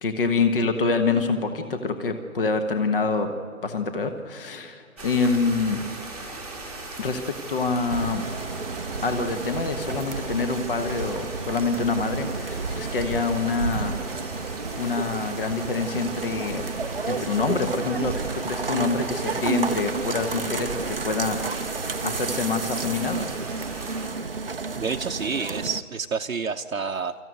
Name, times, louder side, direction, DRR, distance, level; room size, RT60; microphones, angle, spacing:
voice 1, 0.0-3.3 3.6-5.9 7.0-7.2 7.5-8.2 9.0-14.0 14.8-16.6 17.1-21.4 22.0-23.3, left 4 dB, 40° left, 7 dB, 1.3 m, -26 dB
sound 1, 5.0-24.1, right 2 dB, 5° left, 1.4 m, -39 dB
sound 2, 7.9-25.8, right 4 dB, 40° right, 0.6 m, -31 dB
voice 2, 24.8-27.2, right 5 dB, 70° right, 3 dB, 0.9 m, -29 dB
25.5 x 14.5 x 9.3 m, 2.3 s
figure-of-eight pair, 155°, 44 cm